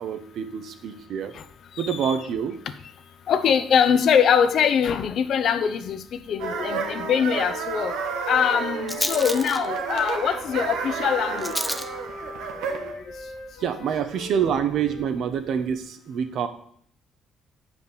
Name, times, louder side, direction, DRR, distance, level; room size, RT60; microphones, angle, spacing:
voice 1, 0.0-1.3 1.8-2.6 13.6-16.5, right 8 dB, 65° right, 1.1 m, -26 dB
voice 2, 1.8-2.2 3.3-8.0 8.3-11.6, left 7 dB, 60° left, 0.8 m, -23 dB
Rattle, 5.8-15.8, left 1 dB, 5° left, 0.7 m, -37 dB
sound 1, 6.4-12.9, right 6 dB, 90° right, 1.3 m, -31 dB
Wind instrument woodwind instrument, 6.7-10.7 11.0-15.2, left 3 dB, 85° left, 1.9 m, -41 dB
9.6 x 5.1 x 6.8 m
cardioid pair, 105°, 0 cm